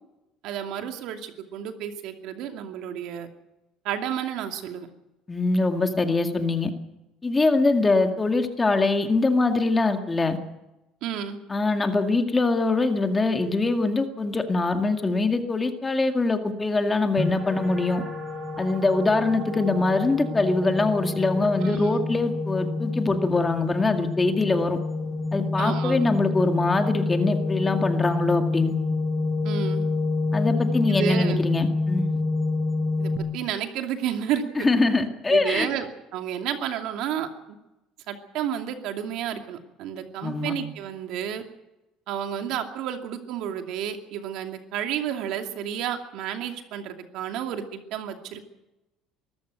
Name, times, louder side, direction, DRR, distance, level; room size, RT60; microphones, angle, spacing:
voice 1, 0.4-3.3 3.8-4.9 11.0-11.4 21.6-22.0 25.6-26.0 29.4-29.9 30.9-31.4 33.0-34.4 35.3-37.3 38.1-41.4 42.1-48.4, right 9 dB, 65° right, 5 dB, 2.5 m, -31 dB
voice 2, 5.3-6.7 7.2-10.4 11.5-18.0 18.6-24.8 25.3-28.7 30.3-32.1 34.6-35.7 40.2-40.5, left 3 dB, 15° left, 6 dB, 2.0 m, -23 dB
sound 1, 17.2-33.2, left 3 dB, 10° right, 5.7 m, -28 dB
23.5 x 14.0 x 8.2 m, 0.97 s
cardioid pair, 130°, 0 cm